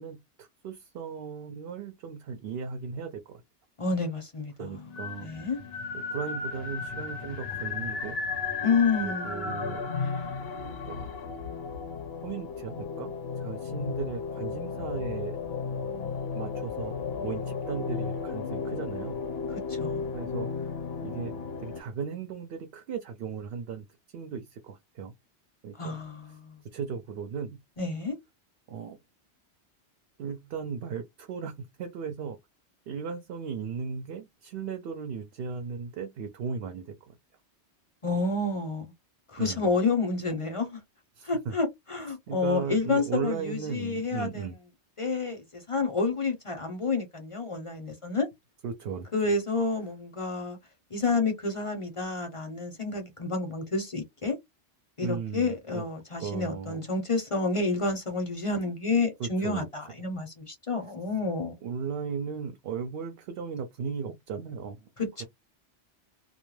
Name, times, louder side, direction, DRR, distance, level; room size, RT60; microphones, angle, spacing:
voice 1, 0.0-3.4 4.6-5.3 6.1-8.2 9.0-9.9 10.8-11.4 12.2-15.4 15.7-15.9 16.3-17.0 17.2-19.2 20.1-20.7 21.0-21.3 21.6-25.1 25.6-26.0 26.7-27.6 28.7-29.0 30.2-32.4 32.9-37.2 39.4-39.7 41.2-41.6 42.3-44.5 48.6-49.1 55.0-55.9 56.2-56.9 59.2-59.7 61.6-64.9 65.2-65.3, right 6 dB, 65° right, 0.7 m, -36 dB
voice 2, 3.8-4.7 5.2-5.6 8.6-9.5 19.7-20.0 25.7-26.6 27.8-28.1 38.0-38.8 39.3-40.8 41.2-44.5 45.0-48.3 49.1-50.6 50.9-54.4 55.0-61.5 65.0-65.3, left 3 dB, 35° left, 0.6 m, -29 dB
sound 1, 4.7-21.8, left 5 dB, 65° left, 0.9 m, -34 dB
2.2 x 2.1 x 3.1 m
omnidirectional pair, 1.2 m